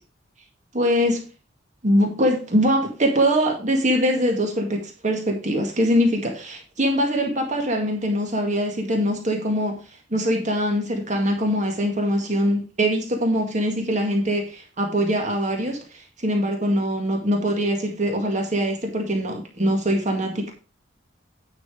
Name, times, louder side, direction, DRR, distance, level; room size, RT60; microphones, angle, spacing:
voice 1, 0.7-1.3 1.8-9.8 10.1-20.5, equal, 40° right, 2 dB, 2.0 m, -23 dB
9.9 x 6.1 x 4.9 m, 0.33 s
head